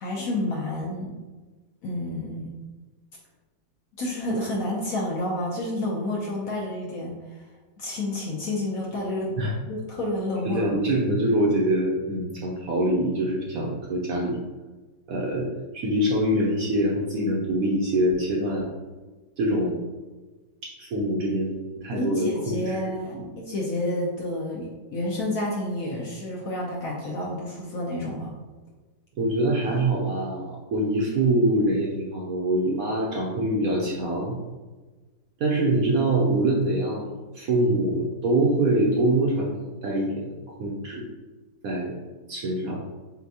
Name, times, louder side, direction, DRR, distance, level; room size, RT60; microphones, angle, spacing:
voice 1, 0.0-1.1 1.8-2.5 4.0-7.4 7.8-9.4 9.7-10.7 21.9-28.3, left 1 dB, 65° left, -3 dB, 0.9 m, -30 dB
voice 2, 10.4-14.4 15.1-15.5 15.7-18.7 19.4-19.8 20.6-22.8 23.1-23.3 29.2-34.3 35.4-40.3 40.6-41.0 41.6-41.9 42.3-42.8, right 1 dB, 65° right, -3 dB, 0.9 m, -24 dB
6.7 x 2.2 x 2.7 m, 1.3 s
omnidirectional pair, 2.0 m